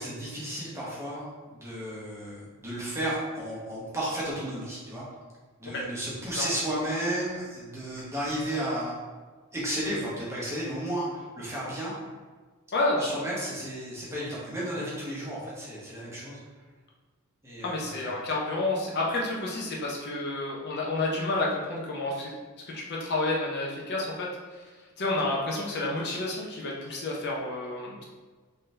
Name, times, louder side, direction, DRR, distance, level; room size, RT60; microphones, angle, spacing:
voice 1, 0.0-5.0 5.6-8.9 9.5-11.9 13.0-16.4 17.4-18.1, right 1 dB, 10° right, -7 dB, 0.9 m, -33 dB
voice 2, 12.7-13.2 17.6-22.3 22.7-24.3 24.5-24.6 25.0-28.0, left 2 dB, 50° left, -3 dB, 0.6 m, -30 dB
3.7 x 2.7 x 3.2 m, 1.4 s
head